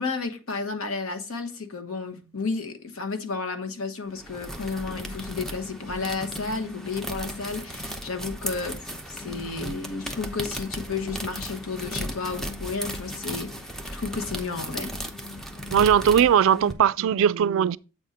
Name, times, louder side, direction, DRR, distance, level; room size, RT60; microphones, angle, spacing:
voice 1, 0.0-14.9, left 4 dB, 75° left, 1.1 m, -32 dB
sound 1, 4.1-16.7, equal, ahead, 0.8 m, -36 dB
voice 2, 15.7-17.8, right 8 dB, 65° right, 0.3 m, -20 dB
7.9 x 4.2 x 5.0 m
head